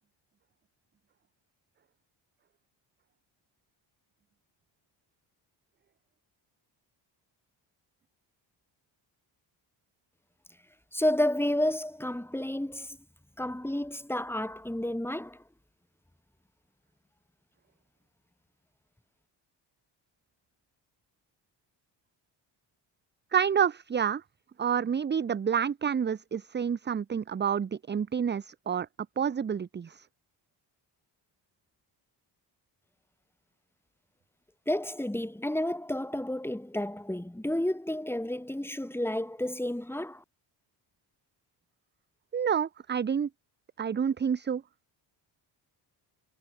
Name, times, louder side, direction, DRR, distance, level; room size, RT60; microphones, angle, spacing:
voice 1, 10.9-13.0 13.4-15.4 34.7-40.2, left 1 dB, 5° left, 4.9 m, -31 dB
voice 2, 23.3-24.2 24.6-28.9 29.2-30.1 42.3-43.3 43.8-44.6, right 7 dB, 25° right, 0.5 m, -28 dB
cardioid pair, 115°, 45 cm